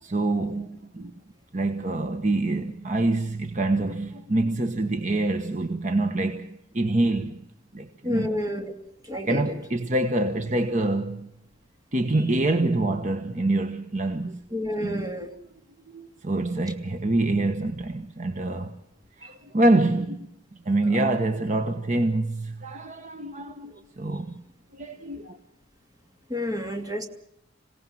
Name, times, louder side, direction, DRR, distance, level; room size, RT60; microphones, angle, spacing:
voice 1, 0.0-1.1 1.5-7.4 7.7-8.3 9.2-11.3 11.9-14.4 14.8-15.1 15.9-18.8 19.2-20.3 20.6-24.4 24.7-25.4, right 2 dB, 40° right, 1.2 m, -26 dB
voice 2, 8.0-8.7 9.1-9.4 14.5-15.3 19.2-19.3 26.3-27.1, left 1 dB, 20° right, 2.7 m, -29 dB
27.0 x 17.5 x 7.7 m
head